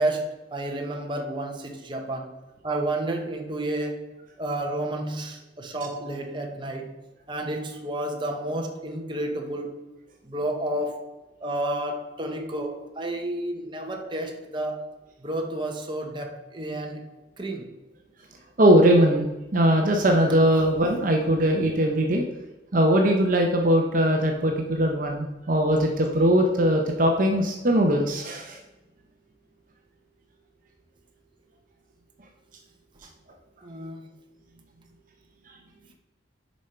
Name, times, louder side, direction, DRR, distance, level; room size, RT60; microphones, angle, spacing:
voice 1, 0.0-2.3 2.6-4.1 4.4-7.0 7.3-9.8 10.2-11.1 11.4-14.8 15.2-17.0 17.4-17.7 33.6-34.0, right 1 dB, 25° right, 2 dB, 1.0 m, -31 dB
voice 2, 18.6-19.3 19.5-22.2 22.7-28.6, equal, 45° right, 2 dB, 0.8 m, -20 dB
7.0 x 5.3 x 4.4 m, 1.0 s
head